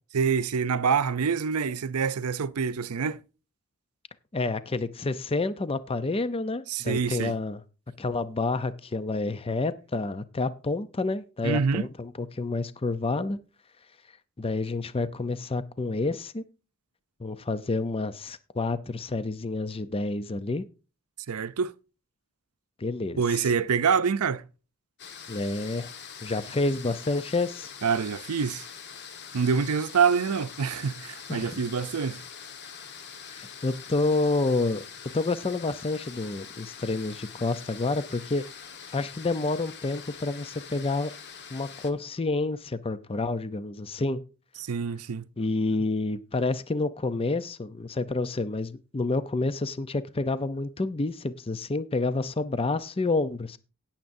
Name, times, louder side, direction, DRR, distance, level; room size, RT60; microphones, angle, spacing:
voice 1, 0.1-3.2 6.7-7.3 11.4-11.9 21.3-21.7 23.2-24.5 27.8-28.7 29.3-32.2 44.6-45.2, right 6 dB, 80° right, 0.6 m, -26 dB
voice 2, 4.3-7.6 8.0-13.4 14.4-16.4 17.2-20.6 22.8-23.5 25.3-25.9 26.2-27.7 31.3-31.6 33.3-34.8 35.1-38.4 38.9-41.1 41.5-44.2 45.4-53.6, left 3 dB, 25° left, 0.6 m, -29 dB
sound 1, 25.0-41.9, left 7 dB, 50° left, 1.4 m, -44 dB
18.0 x 7.3 x 2.6 m
head